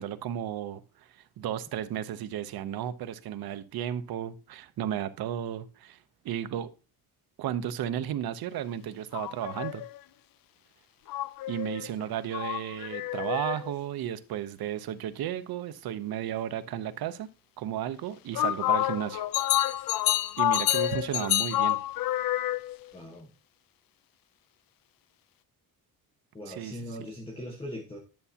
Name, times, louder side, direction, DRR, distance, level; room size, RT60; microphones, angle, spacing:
voice 1, 0.0-6.0 6.2-6.7 7.4-9.8 11.5-17.3 17.6-19.2 20.4-21.8 26.5-27.0, right 10 dB, 75° right, 0.8 m, -34 dB
sound 1, 9.1-10.0 11.1-13.7 18.3-22.9, left 14 dB, 65° left, 0.5 m, -28 dB
voice 2, 22.9-23.3 26.3-28.0, equal, 15° left, 1.3 m, -40 dB
10.5 x 6.9 x 2.8 m
cardioid pair, 145°, 37 cm